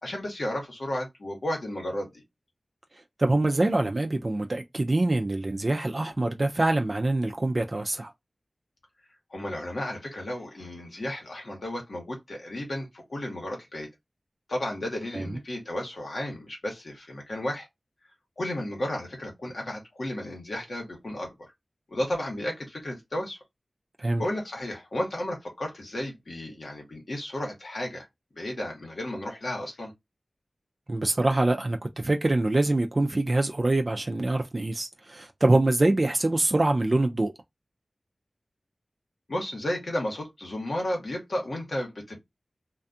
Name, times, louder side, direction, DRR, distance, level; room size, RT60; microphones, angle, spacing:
voice 1, 0.0-2.2 9.3-13.9 14.5-17.7 18.4-21.5 21.9-23.4 24.2-28.1 28.3-29.9 39.3-42.2, left 1 dB, 75° left, 1.3 m, -33 dB
voice 2, 3.2-8.1 15.1-15.4 24.0-24.2 30.9-37.3, right 2 dB, 45° right, 0.4 m, -25 dB
2.5 x 2.3 x 2.5 m
wide cardioid pair, 45°, 0 cm